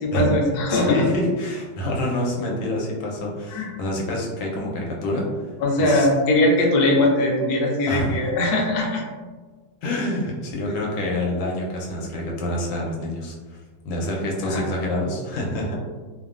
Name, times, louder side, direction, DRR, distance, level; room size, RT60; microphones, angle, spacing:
voice 1, 0.0-1.0 3.5-3.7 5.6-9.0 14.4-14.6, left 1 dB, 70° left, -1 dB, 1.0 m, -20 dB
voice 2, 0.7-5.5 5.8-6.1 7.9-8.2 9.8-13.6 13.8-15.8, left 1 dB, 85° left, -2 dB, 1.4 m, -26 dB
3.2 x 2.1 x 2.4 m, 1.4 s
omnidirectional pair, 2.2 m